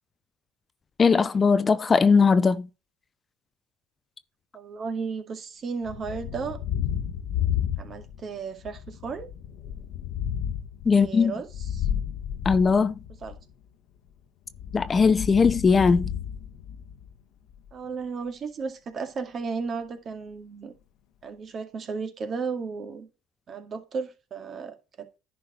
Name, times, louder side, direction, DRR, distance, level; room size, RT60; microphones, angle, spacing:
voice 1, 1.0-2.7 10.9-11.3 12.4-12.9 14.7-16.1, left 5 dB, 30° left, 0.6 m, -19 dB
voice 2, 4.5-6.6 7.8-9.3 10.9-11.9 13.2-13.4 17.7-20.7 21.2-23.1 23.5-25.1, right 5 dB, 40° right, 2.1 m, -34 dB
Thunder, 5.8-8.3 8.6-13.4 14.5-17.1, left 9 dB, 65° left, 1.2 m, -32 dB
10.5 x 4.6 x 4.3 m
supercardioid pair, 90°, 0 cm